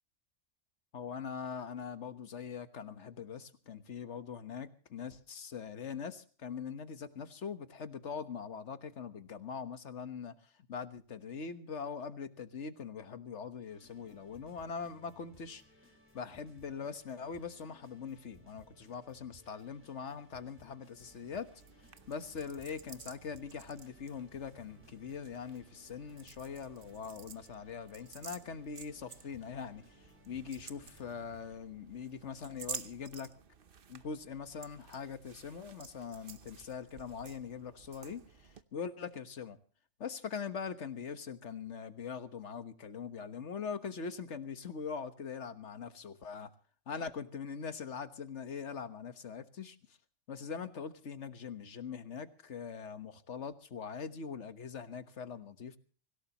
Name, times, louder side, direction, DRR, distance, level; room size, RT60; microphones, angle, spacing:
voice 1, 0.9-15.6 16.1-21.5 22.1-33.3 33.9-39.6 40.0-46.5 46.9-50.0 50.3-55.8, left 6 dB, 65° left, 10 dB, 1.6 m, -42 dB
sound 1, 13.6-31.6, left 1 dB, 10° right, 4.5 m, -63 dB
sound 2, 21.0-38.6, right 6 dB, 50° right, 1.0 m, -52 dB
25.0 x 17.0 x 3.0 m, 0.41 s
omnidirectional pair, 1.3 m